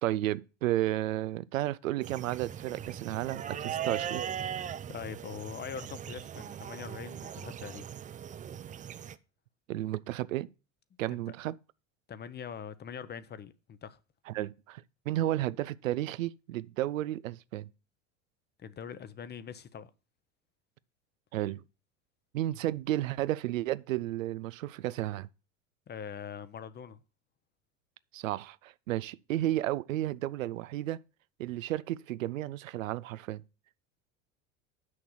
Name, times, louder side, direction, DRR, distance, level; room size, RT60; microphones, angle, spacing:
voice 1, 0.0-4.2 9.7-10.5 11.0-11.6 14.3-17.7 21.3-21.6 22.3-25.3 28.1-31.0 31.4-33.4, right 14 dB, 85° right, 0.5 m, -32 dB
sound 1, 2.0-9.2, right 9 dB, 20° right, 0.4 m, -39 dB
voice 2, 4.9-7.9 11.1-11.2 12.1-14.0 18.6-19.9 25.9-27.0, left 7 dB, 25° left, 0.7 m, -42 dB
6.5 x 5.7 x 7.1 m
hypercardioid pair, 85°, 38 cm